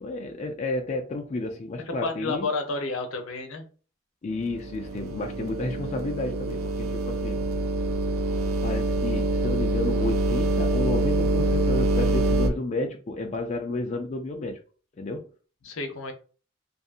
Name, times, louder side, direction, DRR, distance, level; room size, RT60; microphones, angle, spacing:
voice 1, 0.0-2.5 4.2-7.4 8.6-14.6 15.0-15.3, left 2 dB, 35° left, 0.3 m, -31 dB
voice 2, 1.9-3.7 15.6-16.1, left 3 dB, 80° left, 0.7 m, -30 dB
sound 1, 4.4-12.5, right 1 dB, 90° right, 0.5 m, -25 dB
2.6 x 2.5 x 2.4 m
head